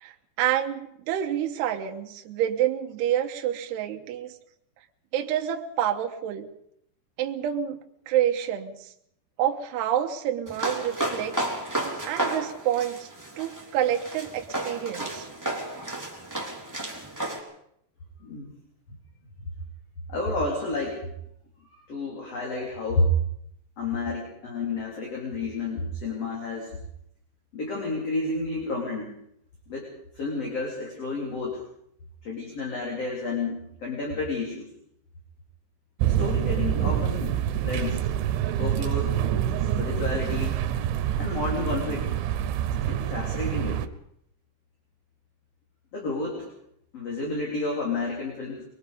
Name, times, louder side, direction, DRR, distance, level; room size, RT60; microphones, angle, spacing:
voice 1, 0.0-4.3 5.1-6.5 7.2-7.8 8.1-8.9 9.4-11.8 12.1-13.1 13.4-15.3, right 11 dB, 70° right, 3 dB, 3.0 m, -28 dB
sound 1, 10.5-17.4, right 1 dB, 5° right, 2.3 m, -32 dB
voice 2, 18.2-18.5 20.1-21.0 21.7-23.1 23.8-26.7 27.5-29.1 29.7-31.6 32.2-34.7 36.0-38.0 38.6-39.1 39.6-40.7 41.2-42.1 42.8-43.8 45.9-46.5 46.9-48.6, left 2 dB, 35° left, -2 dB, 4.3 m, -30 dB
sound 2, 36.0-43.9, right 10 dB, 90° right, 3.4 m, -26 dB
23.0 x 22.0 x 5.2 m, 0.73 s
omnidirectional pair, 5.3 m